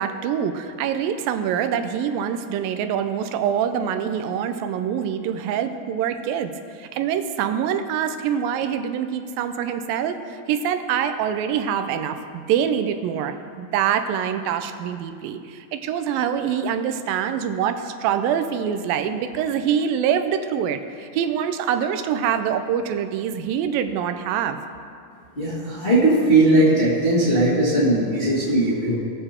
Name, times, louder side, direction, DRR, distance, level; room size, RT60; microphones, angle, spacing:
voice 1, 0.0-6.5 6.8-24.6, right 8 dB, 85° right, 8 dB, 2.4 m, -25 dB
voice 2, 25.4-29.0, right 2 dB, 25° left, -8 dB, 1.4 m, -18 dB
18.5 x 6.7 x 4.4 m, 2.3 s
omnidirectional pair, 4.0 m